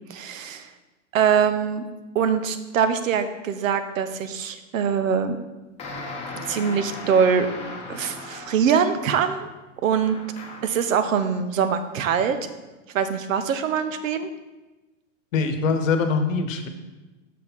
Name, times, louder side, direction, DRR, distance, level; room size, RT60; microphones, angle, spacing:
voice 1, 0.1-0.7 1.1-1.9 2.1-5.4 6.5-7.5 7.9-9.5 9.8-10.2 10.6-12.4 12.9-14.3, right 7 dB, 80° right, 10 dB, 0.8 m, -23 dB
sound 1, 5.8-8.8 10.0-10.8, left 3 dB, 15° left, 0.9 m, -37 dB
voice 2, 15.3-16.7, left 4 dB, 75° left, 8 dB, 1.0 m, -23 dB
6.4 x 4.6 x 5.5 m, 1.1 s
supercardioid pair, 150°, 39 cm